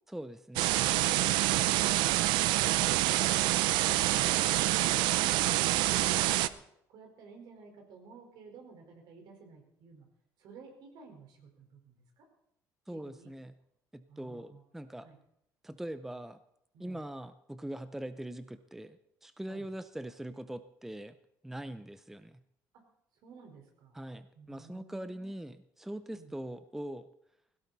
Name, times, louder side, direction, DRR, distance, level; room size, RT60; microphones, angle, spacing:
voice 1, 0.1-1.2 12.9-13.5 13.9-15.1 15.6-16.4 16.8-21.2 21.4-22.4 23.9-27.1, right 1 dB, 5° right, 12 dB, 0.6 m, -42 dB
sound 1, 0.6-6.5, right 16 dB, 85° right, 0.6 m, -27 dB
voice 2, 3.8-4.6 6.9-10.1 10.4-12.2 12.9-13.3 14.1-14.6 15.0-15.2 16.7-17.0 19.4-19.7 22.7-22.8 23.2-24.0 24.3-25.3 26.1-26.3, right 4 dB, 70° right, 3 dB, 4.5 m, -54 dB
17.0 x 17.0 x 4.1 m, 0.76 s
cardioid pair, 110°, 8 cm